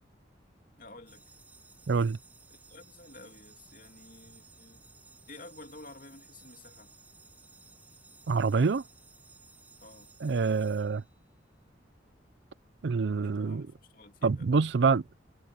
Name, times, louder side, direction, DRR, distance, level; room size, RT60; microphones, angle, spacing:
voice 1, 0.8-1.3 2.5-4.9 5.3-6.9 9.8-10.1 13.2-14.9, left 2 dB, 50° left, 2.8 m, -52 dB
sound 1, 1.1-11.5, right 4 dB, 10° right, 2.4 m, -57 dB
voice 2, 1.9-2.2 8.3-8.8 10.2-11.0 12.8-13.7 14.2-15.0, right 4 dB, 75° right, 0.5 m, -26 dB
head